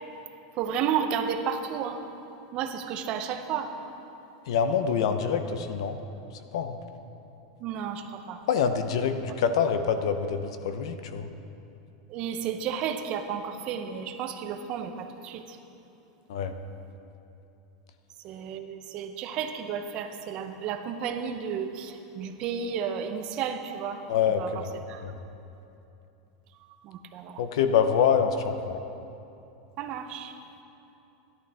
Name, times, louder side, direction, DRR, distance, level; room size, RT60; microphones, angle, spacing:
voice 1, 0.6-2.0 2.5-3.7 7.6-8.4 12.1-15.4 18.2-24.0 24.4-24.5 24.9-25.0 27.1-27.4 29.8-30.3, right 7 dB, 35° right, 7 dB, 0.6 m, -32 dB
voice 2, 4.5-6.0 6.5-6.8 8.5-11.3 16.3-16.5 24.1-24.7 25.0-25.2 27.4-28.8, left 7 dB, 70° left, 9 dB, 0.7 m, -26 dB
13.5 x 11.0 x 3.4 m, 2.8 s
supercardioid pair, 165°, 3 cm